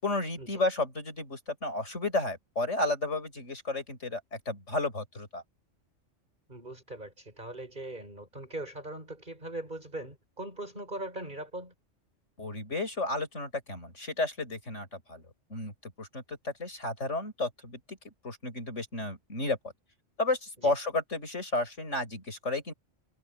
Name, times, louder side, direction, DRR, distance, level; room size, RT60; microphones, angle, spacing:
voice 1, 0.0-5.4 12.4-15.2 15.5-19.6 20.2-22.7, left 2 dB, 70° left, 6.8 m, -32 dB
voice 2, 6.5-11.7 20.6-20.7, right 1 dB, 40° right, 7.0 m, -40 dB
omnidirectional pair, 1.3 m